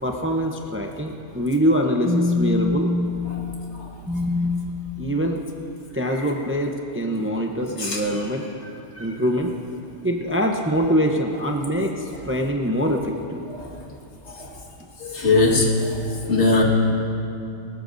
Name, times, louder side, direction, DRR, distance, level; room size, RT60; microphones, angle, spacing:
voice 1, 0.0-3.2 4.1-4.7 5.0-5.4 5.9-8.4 9.0-9.5 10.0-13.5, equal, 15° right, 2 dB, 0.7 m, -23 dB
voice 2, 15.0-16.6, left 3 dB, 65° left, -2 dB, 2.1 m, -21 dB
20.0 x 19.0 x 2.7 m, 2.7 s
omnidirectional pair, 1.2 m